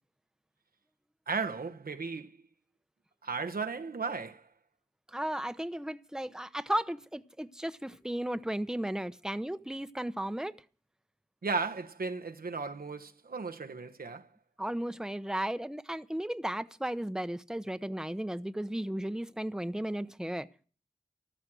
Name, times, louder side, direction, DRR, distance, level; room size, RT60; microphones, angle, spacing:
voice 1, 1.3-2.4 3.2-4.5 11.4-14.3, right 4 dB, 90° right, 1.1 m, -35 dB
voice 2, 5.1-10.5 14.6-20.5, right 1 dB, 5° right, 0.8 m, -35 dB
14.5 x 13.5 x 6.2 m
wide cardioid pair, 45°, 15 cm